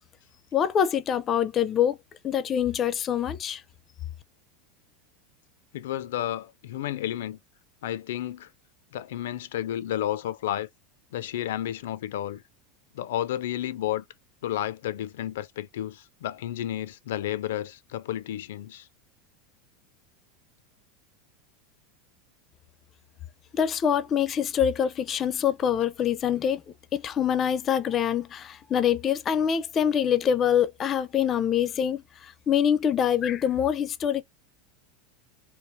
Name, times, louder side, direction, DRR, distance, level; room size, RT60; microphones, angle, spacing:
voice 1, 0.5-2.0 2.2-3.6 23.5-26.6 26.9-34.2, left 8 dB, 25° left, 0.5 m, -25 dB
voice 2, 5.7-7.4 7.8-8.5 8.9-10.7 11.1-12.4 12.9-14.0 14.4-18.9, left 12 dB, 85° left, 0.5 m, -31 dB
3.3 x 2.8 x 3.1 m
supercardioid pair, 155°, 0 cm